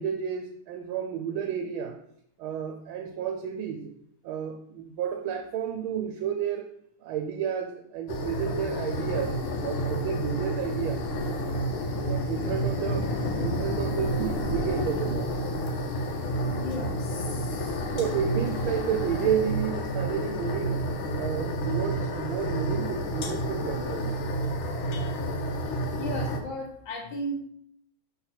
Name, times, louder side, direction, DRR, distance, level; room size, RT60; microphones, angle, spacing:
voice 1, 0.0-2.0 2.4-3.9 4.2-6.7 7.0-11.0 12.0-15.3 17.9-20.9 21.1-24.2, right 8 dB, 85° right, 4 dB, 1.5 m, -31 dB
sound 1, 8.1-26.4, equal, 90° left, 1.6 m, -30 dB
voice 2, 16.5-17.9 26.0-27.4, equal, 75° left, 3 dB, 1.7 m, -36 dB
5.8 x 4.0 x 4.3 m, 0.70 s
omnidirectional pair, 2.2 m